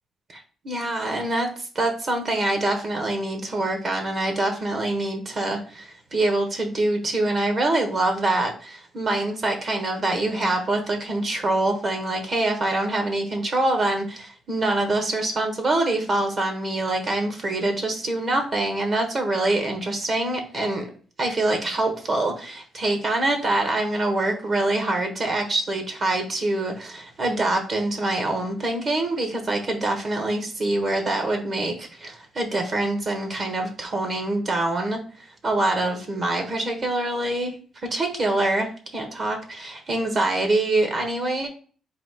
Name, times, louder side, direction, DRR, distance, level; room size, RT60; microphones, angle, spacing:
voice 1, 0.3-20.9 21.2-35.0 35.4-37.6 37.9-41.5, right 2 dB, 45° right, 4 dB, 1.0 m, -25 dB
4.0 x 2.4 x 4.7 m, 0.41 s
cardioid pair, 90°, 0 cm